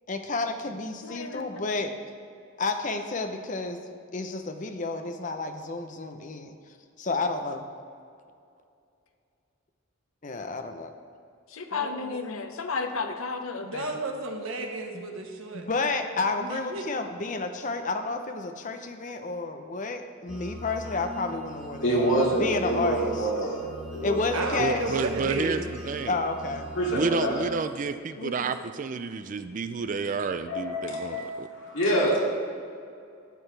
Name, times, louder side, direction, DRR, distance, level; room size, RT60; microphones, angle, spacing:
voice 1, 0.1-1.9 2.6-3.9 4.1-6.5 7.0-7.7 10.2-10.9 14.9-15.0 15.5-22.0 22.3-23.3 24.0-24.9 26.1-26.7, left 3 dB, 40° left, 6 dB, 0.7 m, -30 dB
voice 2, 1.0-1.6 11.5-13.9 28.2-28.5, left 4 dB, 90° left, 7 dB, 0.8 m, -33 dB
voice 3, 11.7-12.1 13.6-15.7 16.5-16.8 24.3-25.7, right 2 dB, 80° right, 2 dB, 1.2 m, -33 dB
sound 1, 20.3-27.5, equal, 5° right, 1.2 m, -41 dB
voice 4, 21.8-23.6 23.9-24.5 26.8-27.3 30.5-32.2, right 1 dB, 65° left, -4 dB, 2.5 m, -26 dB
voice 5, 24.6-26.2 26.9-31.5, right 4 dB, 40° right, 11 dB, 0.3 m, -30 dB
12.0 x 7.9 x 3.3 m, 2.4 s
head